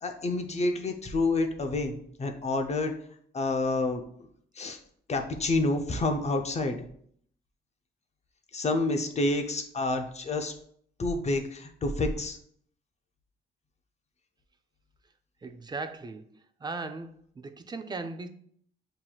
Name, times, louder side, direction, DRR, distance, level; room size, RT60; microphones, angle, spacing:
voice 1, 0.0-2.9 3.3-4.0 4.6-4.8 5.1-6.8 8.5-10.5 11.0-12.4, left 2 dB, 35° left, 5 dB, 0.6 m, -28 dB
voice 2, 15.4-16.2 16.6-17.1 17.4-18.3, right 3 dB, 20° right, 8 dB, 0.5 m, -37 dB
7.3 x 2.9 x 2.3 m, 0.63 s
cardioid pair, 90°, 20 cm